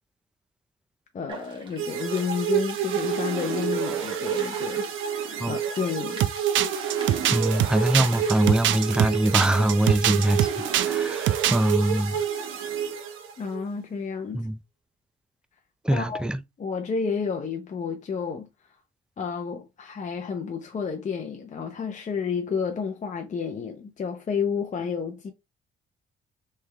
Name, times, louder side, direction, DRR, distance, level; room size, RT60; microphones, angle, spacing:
voice 1, 1.1-5.1 5.5-6.2 13.4-14.5 15.9-16.2 16.6-18.5 19.2-25.3, left 6 dB, 40° left, 0.7 m, -30 dB
sound 1, 1.3-10.0, right 2 dB, 25° right, 1.4 m, -46 dB
sound 2, 1.8-13.6, right 8 dB, 90° right, 0.9 m, -29 dB
sound 3, 6.2-11.0 11.3-11.7, right 12 dB, 70° right, 0.4 m, -24 dB
voice 2, 7.3-10.5 10.8-12.2 14.3-14.6 15.8-16.4, right 1 dB, 5° right, 0.4 m, -23 dB
3.5 x 3.3 x 3.3 m
cardioid pair, 90°, 20 cm